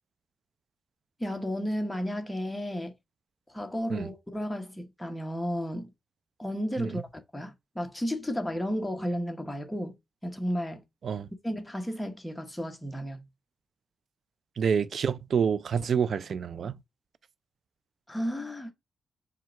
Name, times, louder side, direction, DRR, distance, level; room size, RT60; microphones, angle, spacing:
voice 1, 1.2-2.9 3.5-5.9 6.4-7.0 7.3-10.0 10.2-10.8 11.4-13.3 18.1-18.7, equal, 10° left, 1.0 m, -33 dB
voice 2, 14.6-16.8, right 6 dB, 65° right, 0.3 m, -28 dB
4.5 x 2.3 x 4.3 m
cardioid pair, 70°, 0 cm